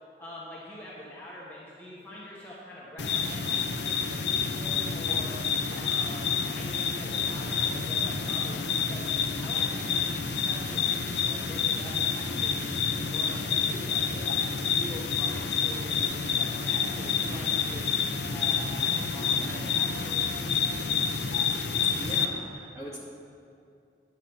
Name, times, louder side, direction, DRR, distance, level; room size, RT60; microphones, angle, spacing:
voice 1, 0.2-5.4 5.7-9.1 9.3-14.4 14.7-17.9 18.3-20.9, left 1 dB, 10° left, -7 dB, 1.1 m, -45 dB
sound 1, 3.0-22.3, left 6 dB, 80° left, 0.7 m, -28 dB
voice 2, 22.0-23.0, equal, 15° right, -5 dB, 2.1 m, -40 dB
9.9 x 8.0 x 5.9 m, 2.5 s
head